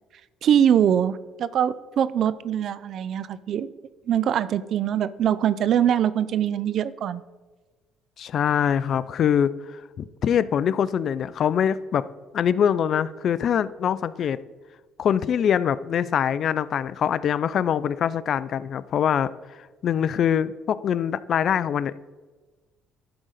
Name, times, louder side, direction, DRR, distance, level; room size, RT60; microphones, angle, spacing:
voice 1, 0.4-3.7 4.1-7.2, right 9 dB, 60° right, 16 dB, 0.4 m, -23 dB
voice 2, 8.2-12.0 12.3-14.4 15.0-19.3 19.8-22.1, left 8 dB, 55° left, 17 dB, 0.3 m, -23 dB
11.0 x 3.9 x 6.4 m, 1.3 s
cardioid pair, 100°, 0 cm